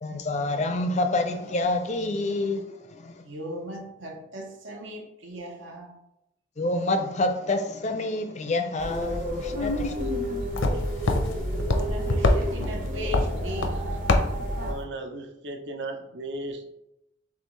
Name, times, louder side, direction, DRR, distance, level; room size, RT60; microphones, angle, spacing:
voice 1, 0.0-3.2 6.6-10.3, left 2 dB, 35° left, 0.4 m, -28 dB
voice 2, 3.2-5.9 10.7-14.0, equal, 75° right, 1.0 m, -38 dB
sound 1, 8.8-14.7, equal, 45° right, 0.9 m, -30 dB
sound 2, 9.6-14.8, left 2 dB, 85° left, 0.6 m, -27 dB
voice 3, 14.6-16.7, right 2 dB, 60° right, 0.6 m, -36 dB
6.6 x 2.4 x 3.1 m
head